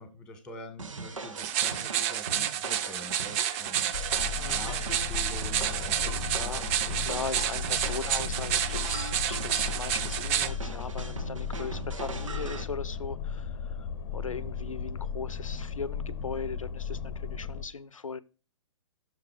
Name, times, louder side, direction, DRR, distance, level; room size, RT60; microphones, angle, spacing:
voice 1, 0.0-7.2, left 1 dB, 5° left, 1.7 m, -46 dB
sound 1, 0.8-12.6, right 4 dB, 75° right, 1.0 m, -40 dB
sound 2, 1.4-10.5, right 11 dB, 25° right, 0.4 m, -30 dB
sound 3, 3.9-17.6, left 6 dB, 45° left, 0.7 m, -36 dB
voice 2, 4.4-4.7 6.3-6.7 7.0-13.9 14.1-18.2, left 5 dB, 85° left, 0.6 m, -39 dB
6.5 x 4.8 x 4.9 m
figure-of-eight pair, 125°, 17 cm